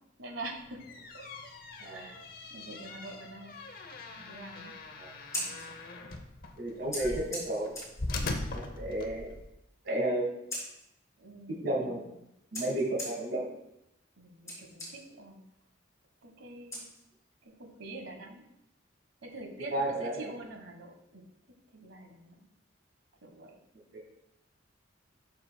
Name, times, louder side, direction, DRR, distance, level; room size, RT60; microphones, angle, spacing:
voice 1, 0.2-0.8 1.1-1.2 1.8-2.2 2.5-3.5 4.0-4.7 5.3-6.1 6.7-7.5 11.2-12.7 14.2-15.4 16.2-16.9 17.4-18.4 19.2-21.2 21.7-22.3 23.2-23.6, right 2 dB, 85° right, 4 dB, 1.4 m, -46 dB
sound 1, 0.6-9.5, left 2 dB, 50° left, 0.8 m, -41 dB
voice 2, 1.8-2.1 5.0-5.1 6.6-7.7 8.5-9.3 9.8-10.3 11.5-12.0 12.5-13.5 19.7-20.3 23.9-24.0, right 1 dB, 55° right, -3 dB, 1.8 m, -32 dB
Scissors, 5.1-17.5, left 1 dB, 15° left, 3.1 m, -45 dB
12.5 x 5.6 x 2.3 m, 0.84 s
head